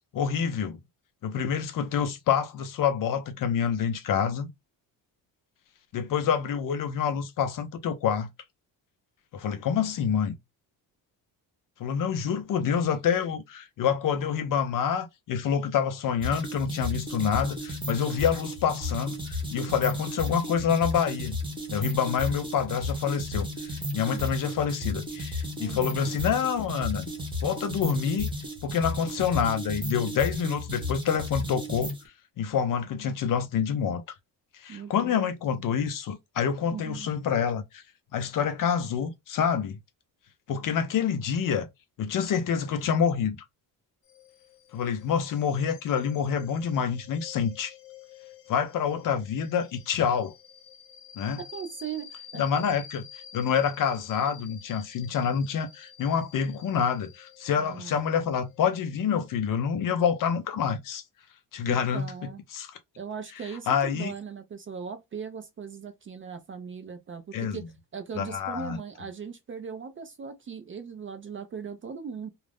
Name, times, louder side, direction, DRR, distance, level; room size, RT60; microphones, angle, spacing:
voice 1, 0.1-0.8 1.2-4.5 5.9-8.3 9.3-10.4 11.8-21.4 21.7-27.1 27.4-28.3 28.6-31.9 32.4-34.0 34.6-37.6 38.1-39.8 40.5-41.7 42.0-43.4 44.7-47.7 48.5-50.3 51.2-51.4 52.4-53.0 53.3-61.0 61.5-62.1 62.5-62.7 63.7-64.1 67.3-67.6 68.2-68.8, left 7 dB, 50° left, 0.5 m, -27 dB
sound 1, 16.2-32.1, left 1 dB, 10° right, 0.8 m, -34 dB
voice 2, 25.6-26.0 34.7-35.8 36.7-37.1 51.4-52.6 57.6-58.3 61.6-62.4 63.0-67.7 67.9-72.3, right 6 dB, 30° right, 0.4 m, -39 dB
sound 2, 44.1-60.3, left 8 dB, 75° left, 0.9 m, -50 dB
2.4 x 2.0 x 3.3 m
cardioid pair, 130°, 42 cm